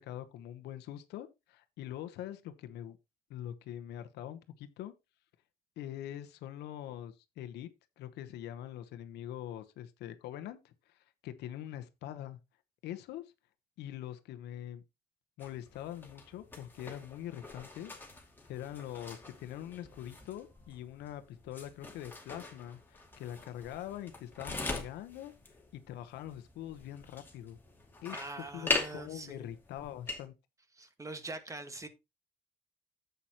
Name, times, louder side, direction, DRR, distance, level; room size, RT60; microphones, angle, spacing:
voice 1, 0.0-3.0 3.3-4.9 5.8-7.7 8.0-11.0 11.2-12.4 12.8-13.2 13.8-14.8 15.4-17.9 18.5-25.3 25.9-27.6 28.0-28.2 28.5-30.3, left 11 dB, 80° left, 1.1 m, -43 dB
sound 1, 15.4-30.3, left 2 dB, 10° left, 2.4 m, -42 dB
voice 2, 28.1-29.5 30.7-31.9, right 2 dB, 20° right, 1.5 m, -43 dB
10.0 x 8.2 x 2.9 m
cardioid pair, 110°, 17 cm